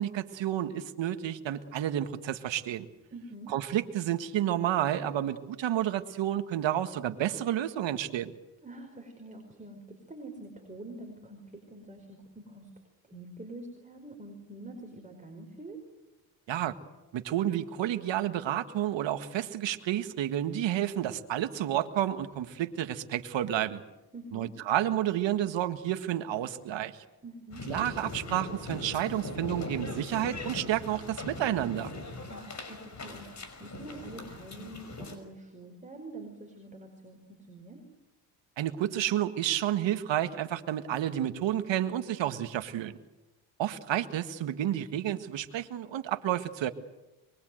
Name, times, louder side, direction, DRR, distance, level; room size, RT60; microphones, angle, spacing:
voice 1, 0.0-2.9 3.5-8.3 16.5-16.8 17.1-23.8 24.3-27.0 27.7-31.9 38.6-43.0 43.6-46.7, right 11 dB, 60° right, 9 dB, 1.8 m, -30 dB
voice 2, 3.1-3.5 8.6-12.7 13.1-15.8 24.1-24.5 27.2-27.7 32.3-37.8, right 2 dB, 15° right, 2 dB, 5.2 m, -46 dB
sound 1, 27.5-35.2, left 2 dB, 35° left, 5.6 m, -40 dB
24.0 x 22.5 x 8.0 m, 1.0 s
cardioid pair, 90°, 50 cm